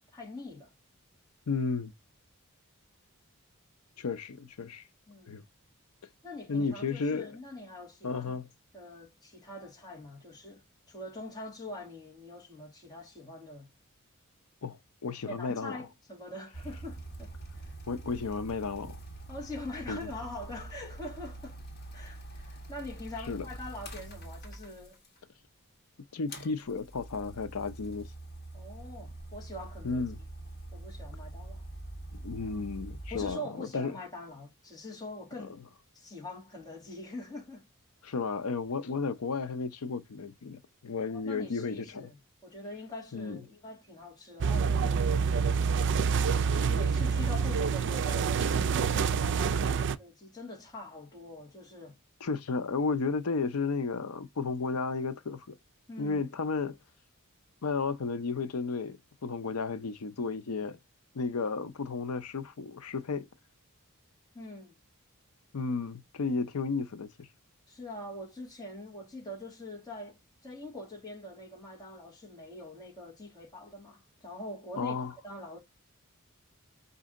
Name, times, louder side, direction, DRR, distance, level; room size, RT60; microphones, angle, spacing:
voice 1, 0.1-0.7 5.1-5.4 6.2-8.3 8.7-13.7 15.3-17.7 19.3-21.6 21.9-25.0 28.5-30.0 30.7-31.6 33.1-35.6 35.9-37.6 41.1-42.2 42.4-45.3 46.6-52.0 55.9-56.2 64.3-64.8 67.7-70.2 70.4-74.9 75.2-75.6, left 1 dB, 15° left, 1.5 m, -44 dB
voice 2, 1.5-1.9 4.0-4.8 5.3-5.4 6.5-7.4 8.0-8.5 14.6-15.8 17.9-19.0 19.9-20.1 23.3-23.4 26.1-28.1 29.8-30.2 32.1-33.9 38.0-42.1 43.1-43.4 52.2-55.6 56.0-56.8 57.6-60.8 61.1-63.3 65.5-67.3 74.7-75.1, left 4 dB, 75° left, 0.6 m, -33 dB
sound 1, 16.5-25.2 26.3-33.3, right 2 dB, 45° left, 1.6 m, -44 dB
sound 2, 44.4-50.0, right 6 dB, 55° right, 0.4 m, -27 dB
5.1 x 2.7 x 3.7 m
head